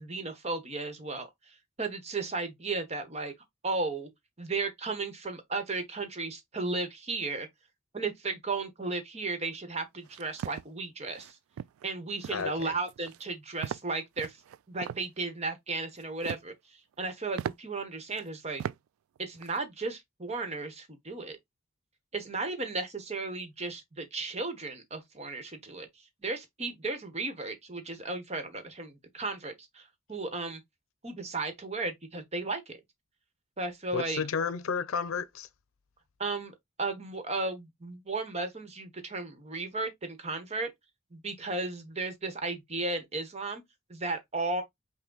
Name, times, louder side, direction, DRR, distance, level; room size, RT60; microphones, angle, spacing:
voice 1, 0.0-3.3 3.6-4.1 4.4-7.5 7.9-11.4 11.8-14.4 14.7-18.6 19.2-21.4 22.1-25.9 26.2-30.6 31.0-32.8 33.6-34.2 36.2-40.7 41.1-43.6 43.9-44.6, right 3 dB, 30° right, 1.1 m, -35 dB
sound 1, 10.1-10.6 11.1-11.3 11.6-11.9 12.2-12.5 12.9-13.2 13.6-13.9 14.2-15.0 16.0-16.5 16.9-17.0 17.4-17.5 18.2-18.3 18.6-18.8 19.2-19.5, right 8 dB, 90° right, 0.3 m, -38 dB
voice 2, 12.3-12.7 33.9-35.5, left 5 dB, 85° left, 0.5 m, -32 dB
5.9 x 2.2 x 3.9 m
head